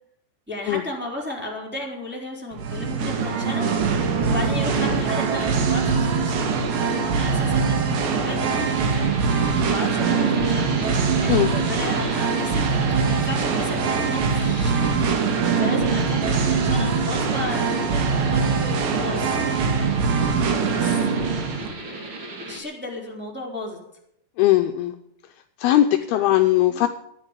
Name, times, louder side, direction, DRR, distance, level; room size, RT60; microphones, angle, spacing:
voice 1, 0.5-3.7 4.2-9.1 9.6-10.7 11.2-15.0 15.3-23.8 26.1-26.9, left 2 dB, 5° right, -2 dB, 3.2 m, -35 dB
Singing, 2.5-21.7, right 5 dB, 85° right, 4.2 m, -22 dB
sound 1, 8.4-22.6, right 2 dB, 35° right, 2.5 m, -36 dB
voice 2, 24.4-25.0 25.6-26.9, left 14 dB, 80° left, 6 dB, 2.4 m, -19 dB
14.5 x 10.0 x 8.2 m, 0.78 s
omnidirectional pair, 4.9 m